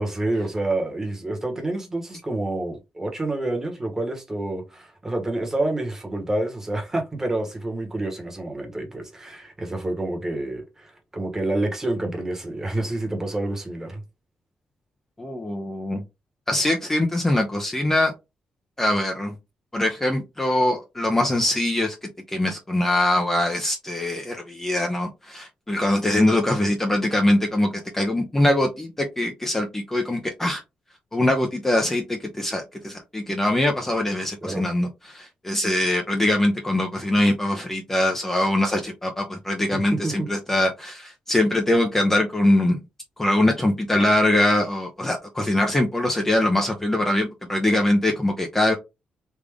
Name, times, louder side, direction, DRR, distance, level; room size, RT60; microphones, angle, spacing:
voice 1, 0.0-14.0 34.4-34.7 39.7-40.3, right 2 dB, 15° right, 1.1 m, -28 dB
voice 2, 15.2-16.0 16.5-18.1 18.8-19.4 19.7-22.0 22.3-30.6 31.1-42.8 43.2-48.7, left 1 dB, 10° left, 0.5 m, -22 dB
3.5 x 2.4 x 3.3 m
cardioid pair, 140°, 3 cm